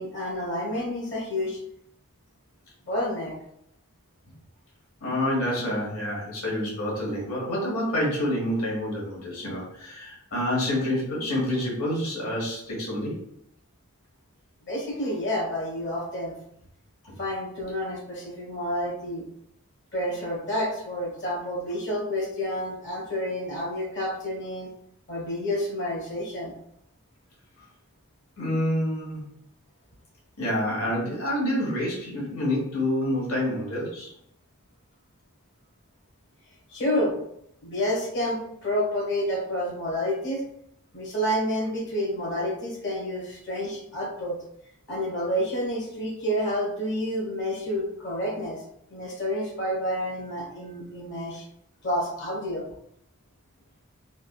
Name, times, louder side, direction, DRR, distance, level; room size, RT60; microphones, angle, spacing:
voice 1, 0.0-1.6 2.9-3.4 14.7-16.3 17.2-19.2 19.9-24.7 25.1-26.5 36.7-37.2 37.6-40.4 40.9-44.4 44.9-48.6 48.9-51.4 51.8-52.7, equal, 55° left, -3 dB, 1.2 m, -29 dB
voice 2, 5.0-13.2 17.0-17.1 28.4-29.2 30.4-34.1, left 1 dB, 85° left, -4 dB, 1.4 m, -28 dB
3.7 x 2.3 x 2.3 m, 0.74 s
head